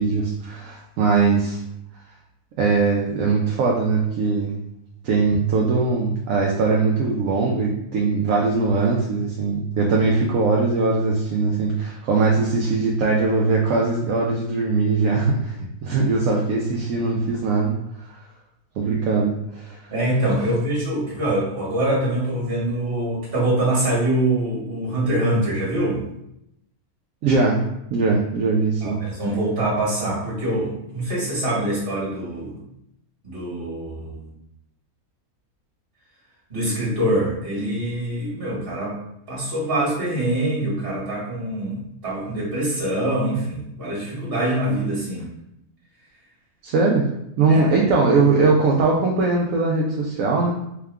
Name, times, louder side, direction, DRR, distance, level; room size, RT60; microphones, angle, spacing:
voice 1, 0.0-1.6 2.6-4.6 5.0-17.7 18.8-19.9 27.2-27.6 27.9-29.0 46.6-47.0 47.4-50.5, right 4 dB, 70° right, -2 dB, 0.9 m, -21 dB
voice 2, 19.9-26.0 28.8-32.6 33.2-34.3 36.5-38.9 39.3-45.3 47.5-47.7, right 1 dB, 40° right, -6 dB, 1.8 m, -24 dB
4.6 x 2.2 x 3.5 m, 0.80 s
omnidirectional pair, 1.5 m